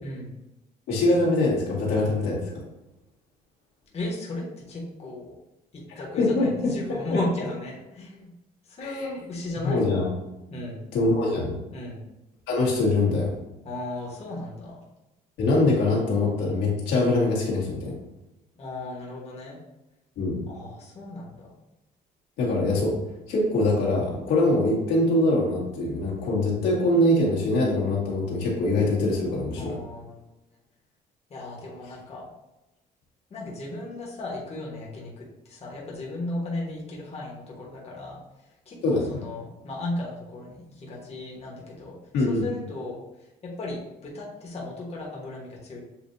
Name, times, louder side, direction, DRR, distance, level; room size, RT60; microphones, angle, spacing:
voice 1, 0.0-0.3 3.9-5.3 5.7-8.3 8.6-9.8 10.5-10.9 11.7-12.0 13.6-14.8 18.6-19.6 20.5-21.5 29.5-30.2 31.3-32.3 33.3-38.2 38.6-42.0 42.3-43.0 43.4-45.8, left 2 dB, 40° left, -3 dB, 1.3 m, -35 dB
voice 2, 0.9-2.4 6.2-6.7 8.8-9.1 9.6-10.0 10.9-11.5 12.5-13.3 15.4-17.9 20.2-20.4 22.4-22.9 23.3-29.8 38.8-39.2 42.1-42.4, left 2 dB, 85° left, -4 dB, 1.6 m, -23 dB
7.4 x 2.6 x 2.7 m, 0.96 s
cardioid pair, 110°, 17 cm